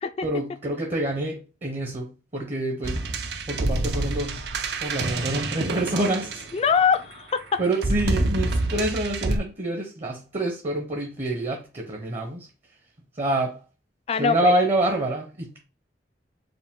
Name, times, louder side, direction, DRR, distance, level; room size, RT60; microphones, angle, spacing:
voice 1, 0.2-3.1 3.5-4.5 4.8-6.4 7.6-12.5 13.2-13.6 14.1-15.6, right 1 dB, 35° right, 0.8 m, -27 dB
sound 1, 2.8-6.9 7.7-9.4, right 2 dB, 65° right, 0.6 m, -27 dB
voice 2, 6.5-7.4 14.1-14.5, left 6 dB, 35° left, 0.3 m, -22 dB
4.8 x 2.2 x 3.6 m
head